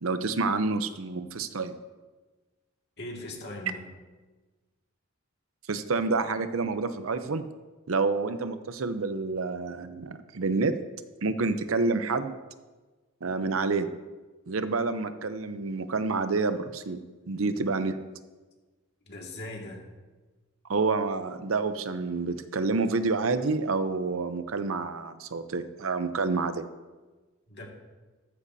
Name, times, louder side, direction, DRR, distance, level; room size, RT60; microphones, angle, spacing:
voice 1, 0.0-1.7 5.7-7.4 7.9-10.8 11.2-12.3 13.2-13.9 14.5-18.0 20.7-26.7, right 3 dB, 75° right, 10 dB, 0.7 m, -28 dB
voice 2, 3.0-3.9 19.1-19.8 27.5-27.7, left 1 dB, 55° left, 0 dB, 2.0 m, -39 dB
14.0 x 13.5 x 2.7 m, 1.3 s
head